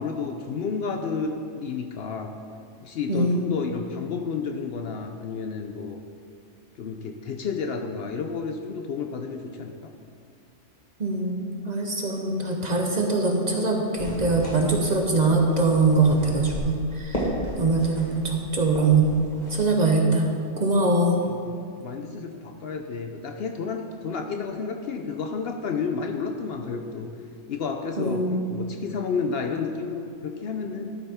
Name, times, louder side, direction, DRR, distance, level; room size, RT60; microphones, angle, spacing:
voice 1, 0.0-2.3 2.8-6.0 6.8-9.9 21.2-27.1 27.5-30.9, left 5 dB, 65° left, 5 dB, 0.7 m, -31 dB
voice 2, 3.1-3.4 11.0-17.3 17.6-19.2 19.5-20.3 20.5-21.2 28.0-28.4, right 3 dB, 40° right, 1 dB, 0.8 m, -22 dB
sound 1, 14.0-19.6, equal, 35° left, 1.6 m, -35 dB
12.0 x 5.5 x 4.3 m, 2.3 s
omnidirectional pair, 1.3 m